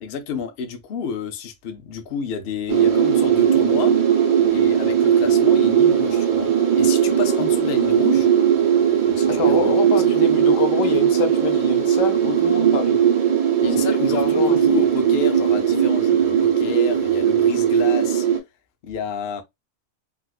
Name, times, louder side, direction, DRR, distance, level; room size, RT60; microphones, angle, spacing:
voice 1, 0.0-4.0 4.5-8.3 9.0-9.7 13.6-18.3 18.8-19.4, left 5 dB, 60° left, 0.7 m, -29 dB
sound 1, 2.7-18.4, right 8 dB, 45° right, 0.7 m, -18 dB
voice 2, 9.3-13.0 14.0-14.6, left 7 dB, 75° left, 1.2 m, -26 dB
3.8 x 2.4 x 2.3 m
omnidirectional pair, 1.4 m